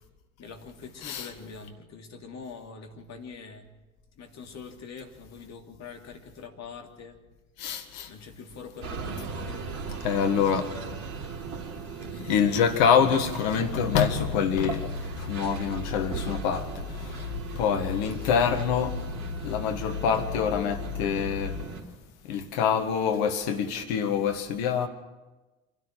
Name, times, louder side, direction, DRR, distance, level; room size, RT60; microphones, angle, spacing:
voice 1, 0.4-3.8 4.1-7.2 8.0-10.0 10.3-11.0 12.0-12.9, left 4 dB, 40° left, 3 dB, 3.1 m, -44 dB
voice 2, 7.6-8.1 10.0-10.7 12.3-14.8 15.3-16.7 17.6-18.9 19.4-21.5 22.3-24.9, left 7 dB, 65° left, 8 dB, 1.9 m, -25 dB
sound 1, 8.8-21.8, right 5 dB, 65° right, 3.3 m, -38 dB
sound 2, 12.5-15.9, right 4 dB, 45° right, 3.2 m, -50 dB
sound 3, 13.6-21.6, left 9 dB, 85° left, 0.9 m, -38 dB
26.5 x 12.5 x 8.6 m, 1.2 s
figure-of-eight pair, 60°, 40 cm